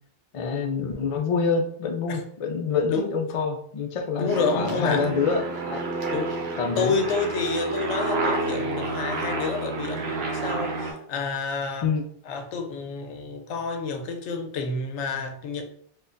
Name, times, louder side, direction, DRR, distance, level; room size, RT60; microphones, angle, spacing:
voice 1, 0.3-5.8 6.6-7.0 11.8-12.0, left 5 dB, 65° left, 3 dB, 0.3 m, -26 dB
voice 2, 4.2-5.1 6.1-6.4 6.8-11.9 12.3-15.6, left 4 dB, 85° left, 5 dB, 0.9 m, -29 dB
Aircraft, 4.3-10.9, right 3 dB, 65° right, 0.9 m, -29 dB
4.3 x 2.3 x 2.5 m, 0.64 s
omnidirectional pair, 1.2 m